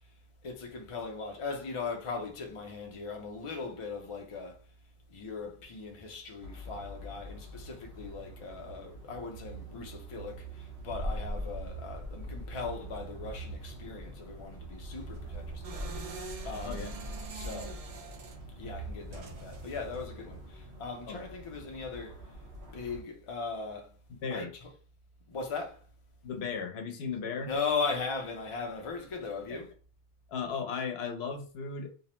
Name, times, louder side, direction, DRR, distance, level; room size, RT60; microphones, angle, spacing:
voice 1, 0.4-4.6 5.1-17.0 17.3-17.8 18.6-22.2 22.7-23.9 24.3-24.7 25.3-25.8 27.4-29.7, left 4 dB, 45° left, 0.4 m, -38 dB
sound 1, 6.4-23.0, right 1 dB, 80° right, 1.0 m, -43 dB
sound 2, 15.0-20.1, right 4 dB, 55° right, 0.4 m, -46 dB
voice 2, 16.6-16.9 21.1-21.2 24.2-24.5 26.2-27.5 30.3-31.9, left 5 dB, 75° left, 0.8 m, -36 dB
2.6 x 2.0 x 2.9 m
omnidirectional pair, 1.1 m